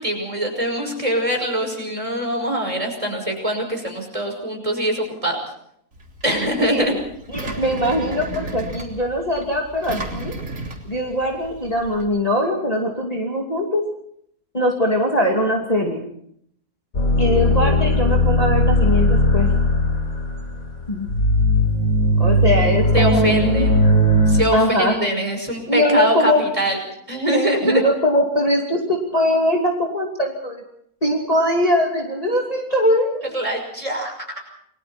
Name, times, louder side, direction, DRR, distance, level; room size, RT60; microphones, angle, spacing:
voice 1, 0.0-5.4 6.2-6.9 22.9-23.8 24.3-26.8 27.1-27.8 33.3-34.4, right 1 dB, 20° right, 2 dB, 6.0 m, -23 dB
Engine, 5.9-12.0, right 2 dB, 55° right, 3.7 m, -34 dB
voice 2, 6.6-7.0 7.3-10.3 10.8-13.8 14.5-16.0 17.2-19.5 20.9-21.1 22.2-23.6 24.5-24.9 25.7-26.4 27.3-30.6 31.0-33.2, left 1 dB, 25° left, 0 dB, 2.8 m, -21 dB
sound 1, 16.9-24.4, left 1 dB, 60° left, 4.3 m, -18 dB
29.0 x 22.0 x 4.4 m, 0.69 s
omnidirectional pair, 1.7 m